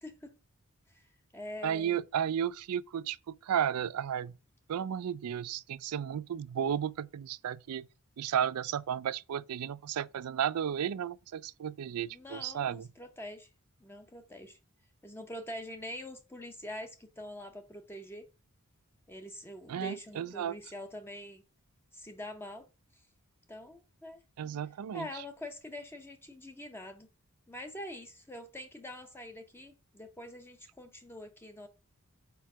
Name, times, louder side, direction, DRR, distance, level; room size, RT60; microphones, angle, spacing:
voice 1, 0.0-0.3 0.9-1.1 1.3-2.0 12.0-13.5 13.8-14.6 15.0-18.2 19.1-21.4 21.9-22.7 23.5-24.2 24.9-27.1 27.5-31.7, left 1 dB, 10° left, 0.7 m, -44 dB
voice 2, 1.6-4.4 4.7-7.9 8.2-12.9 19.7-20.6 24.4-25.2, right 9 dB, 85° right, 0.4 m, -33 dB
4.6 x 4.5 x 5.9 m
head